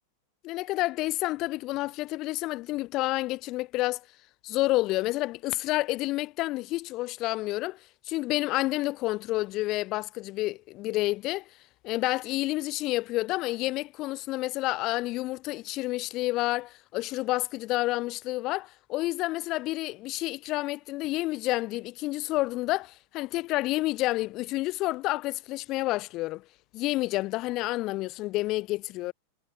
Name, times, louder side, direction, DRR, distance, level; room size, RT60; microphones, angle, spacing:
voice 1, 0.4-4.0 4.4-7.8 8.1-11.5 11.8-26.4 26.7-29.1, left 19 dB, 40° left, 7.3 m, -29 dB
figure-of-eight pair, 90°, 0 cm